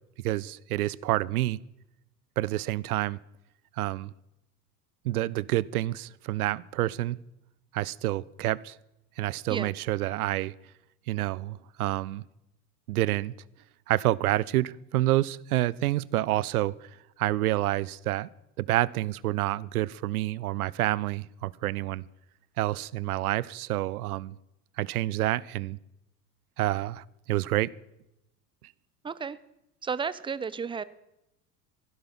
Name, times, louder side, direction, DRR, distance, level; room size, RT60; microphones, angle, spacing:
voice 1, 0.2-1.6 2.4-3.2 3.8-4.1 5.0-7.2 7.7-8.8 9.2-10.5 11.1-12.2 12.9-13.3 13.9-16.9 17.2-18.3 18.6-22.0 22.6-24.4 24.8-25.8 26.6-27.7, right 16 dB, 70° right, 23 dB, 0.6 m, -28 dB
voice 2, 29.0-29.4 29.8-30.8, right 6 dB, 10° right, 17 dB, 0.5 m, -32 dB
16.0 x 11.5 x 5.5 m, 0.87 s
figure-of-eight pair, 75°, 45 cm